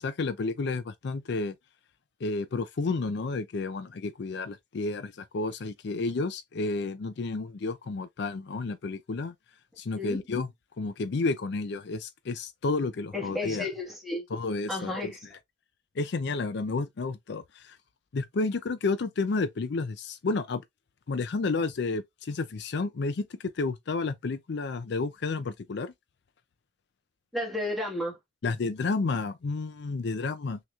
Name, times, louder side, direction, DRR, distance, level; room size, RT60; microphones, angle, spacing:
voice 1, 0.0-1.6 2.2-9.3 9.8-10.5 10.8-13.7 14.3-15.1 16.0-17.8 18.1-20.6 21.1-25.9 28.4-30.6, left 3 dB, 60° left, 0.4 m, -31 dB
voice 2, 13.1-14.2 14.7-15.2 27.3-28.2, left 1 dB, ahead, 1.5 m, -32 dB
6.1 x 2.9 x 2.4 m
head